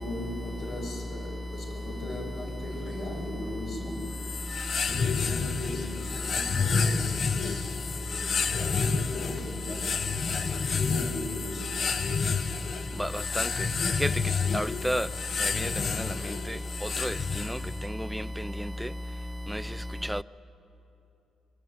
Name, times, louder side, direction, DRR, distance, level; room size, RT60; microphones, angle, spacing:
voice 1, 0.0-4.2 4.8-12.2, left 1 dB, 65° left, 7.7 m, -38 dB
sound 1, 4.0-17.9, left 5 dB, 45° left, 0.7 m, -30 dB
voice 2, 14.5-15.1 15.6-15.7 17.0-17.1 18.0-18.2 19.5-19.6 20.1-20.2, equal, ahead, 0.5 m, -29 dB
23.5 x 23.5 x 9.4 m
cardioid pair, 120°, 0 cm